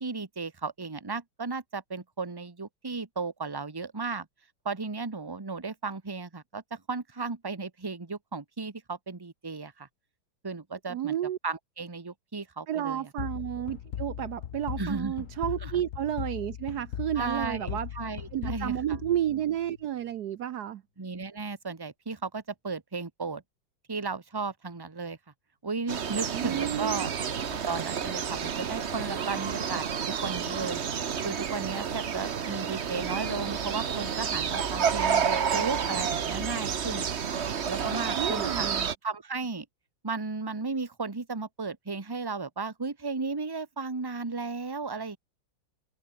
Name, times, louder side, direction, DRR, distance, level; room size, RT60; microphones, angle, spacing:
voice 1, 0.0-4.3 4.6-9.9 10.4-11.1 11.4-13.1 14.8-15.1 15.6-15.7 17.2-18.7 21.0-23.4 23.9-25.2 25.6-27.1 27.5-29.8 30.2-30.8 31.2-37.1 37.7-38.7 39.0-39.6 40.0-45.2, right 4 dB, 15° right, 1.0 m, -35 dB
voice 2, 10.9-11.4 12.7-17.9 18.3-20.8 26.3-27.1 38.2-38.9, right 11 dB, 65° right, 1.0 m, -31 dB
sound 1, 13.2-19.8, left 10 dB, 60° left, 0.8 m, -38 dB
sound 2, 25.9-38.9, right 7 dB, 40° right, 1.0 m, -30 dB
omnidirectional pair, 2.3 m